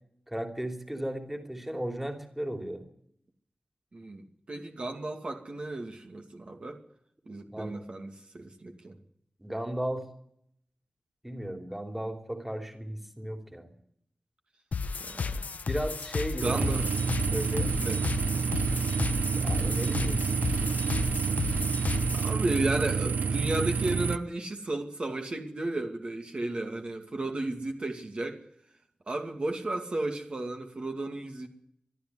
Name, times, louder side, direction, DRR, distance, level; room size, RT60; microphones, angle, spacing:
voice 1, 0.3-2.8 7.5-7.8 9.4-10.1 11.2-13.7 15.6-16.6 17.3-17.7 19.3-20.2, right 1 dB, 5° right, 6 dB, 3.0 m, -35 dB
voice 2, 4.5-6.8 7.3-9.0 15.0-15.4 16.4-16.9 17.8-18.0 22.1-28.4 29.1-31.5, right 2 dB, 45° right, 4 dB, 2.4 m, -33 dB
sound 1, 14.7-22.3, left 5 dB, 75° left, 1.1 m, -33 dB
sound 2, 16.4-24.2, right 5 dB, 85° right, 0.7 m, -28 dB
22.5 x 12.5 x 9.6 m, 0.73 s
wide cardioid pair, 85°, 3 cm